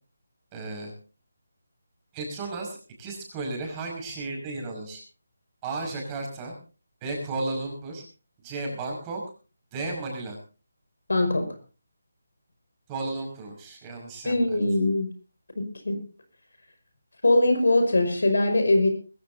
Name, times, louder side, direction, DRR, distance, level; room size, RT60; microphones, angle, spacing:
voice 1, 0.5-0.9 2.1-5.0 5.6-6.5 7.0-8.0 8.4-9.2 9.7-10.4 12.9-14.6, right 3 dB, 15° right, 1 dB, 5.6 m, -34 dB
voice 2, 11.1-11.5 14.2-15.1 15.6-16.0 17.2-18.9, left 2 dB, 85° left, 7 dB, 5.7 m, -22 dB
21.5 x 16.0 x 2.7 m, 0.35 s
figure-of-eight pair, 170°, 0 cm